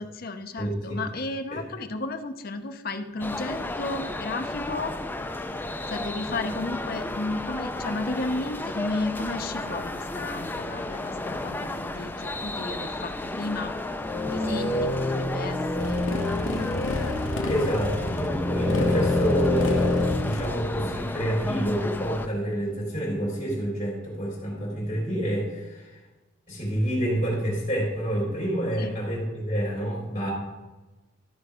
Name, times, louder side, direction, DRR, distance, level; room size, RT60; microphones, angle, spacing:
voice 1, 0.0-4.9 5.9-13.7 14.1-16.0 28.8-28.9, left 2 dB, 45° left, 7 dB, 0.7 m, -33 dB
voice 2, 0.6-1.0 1.5-1.6 6.3-6.4 17.5-25.9 26.5-30.3, right 1 dB, 30° left, -6 dB, 3.5 m, -28 dB
sound 1, 3.2-22.3, left 2 dB, 10° left, 0.4 m, -33 dB
sound 2, 13.9-20.1, left 2 dB, 15° right, 2.3 m, -27 dB
Motorcycle, 15.8-20.9, left 1 dB, 70° left, 1.0 m, -32 dB
13.5 x 4.8 x 4.9 m, 1.2 s
head